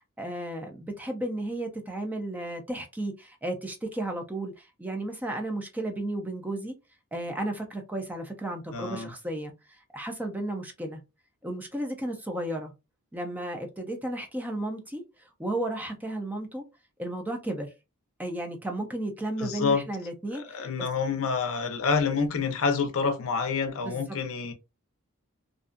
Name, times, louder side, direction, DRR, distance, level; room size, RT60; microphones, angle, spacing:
voice 1, 0.2-6.7 7.1-11.0 11.4-12.7 13.1-16.6 17.0-17.7 18.2-20.7 23.8-24.2, right 1 dB, 5° right, 0.4 m, -34 dB
voice 2, 8.7-9.1 19.4-19.8 20.5-24.5, left 5 dB, 65° left, 0.5 m, -27 dB
2.5 x 2.3 x 2.4 m
head